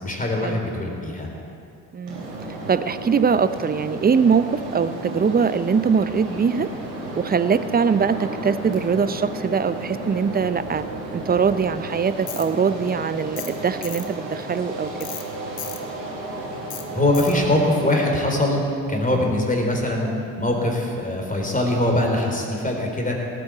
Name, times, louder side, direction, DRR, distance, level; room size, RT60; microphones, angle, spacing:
voice 1, 0.0-1.3 16.9-18.6 18.9-20.1 20.4-23.2, left 1 dB, 15° left, 0 dB, 3.9 m, -22 dB
voice 2, 1.9-2.2 2.7-6.7 7.2-10.8 11.1-14.9 19.1-19.3, right 6 dB, 20° right, 14 dB, 0.6 m, -22 dB
sound 1, 2.1-18.2, right 2 dB, 85° right, 3.4 m, -33 dB
Tools, 12.3-12.5 13.4-13.6 13.8-14.1 15.0-15.2 15.6-15.8 16.7-16.8 17.1-17.4, left 9 dB, 45° left, 1.6 m, -34 dB
18.0 x 8.8 x 8.2 m, 2.6 s
hypercardioid pair, 55°, 50 cm